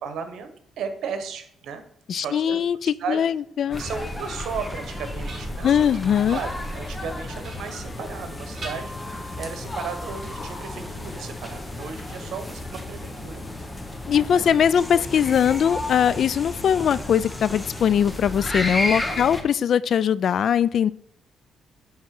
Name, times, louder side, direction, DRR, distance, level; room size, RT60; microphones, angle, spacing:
voice 1, 0.0-1.8 2.1-2.6 3.0-3.2 3.8-5.9 6.3-13.4 14.3-14.5 15.1-15.3 19.1-19.3, right 6 dB, 75° right, 1.1 m, -35 dB
voice 2, 2.1-3.8 5.6-6.4 14.1-20.9, left 8 dB, 60° left, 0.3 m, -21 dB
sound 1, 3.7-19.4, left 1 dB, 15° left, 1.2 m, -33 dB
sound 2, 4.2-4.7 5.1-5.9 6.3-6.7 7.4-8.3 8.5-9.5, right 2 dB, 45° right, 3.4 m, -43 dB
9.6 x 3.6 x 6.0 m
cardioid pair, 90°, 0 cm